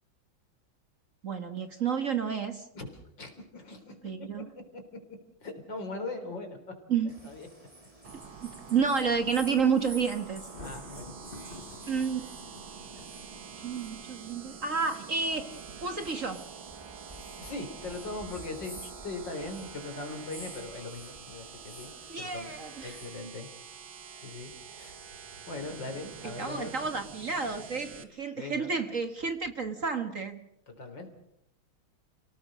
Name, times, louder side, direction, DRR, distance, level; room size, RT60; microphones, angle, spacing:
voice 1, 1.2-2.7 4.0-4.5 6.9-7.2 8.4-10.4 11.9-12.3 13.6-15.5 15.8-16.4 22.1-23.0 26.4-30.4, right 5 dB, 40° right, 8 dB, 1.7 m, -30 dB
voice 2, 3.2-4.1 4.7-4.8 5.4-6.6 7.2-7.5 10.6-11.2 11.5-11.9 12.9-13.2 17.4-21.9 22.2-23.5 24.2-25.0 25.5-26.7 28.4-28.7 30.7-31.1, left 3 dB, 60° left, 5 dB, 4.5 m, -40 dB
sound 1, 7.1-23.2, right 1 dB, 15° right, 3.2 m, -51 dB
sound 2, 8.0-28.0, right 7 dB, 70° right, 2.4 m, -47 dB
Thunder, 10.4-13.7, left 3 dB, 30° left, 1.5 m, -49 dB
30.0 x 18.0 x 6.4 m, 0.79 s
omnidirectional pair, 2.2 m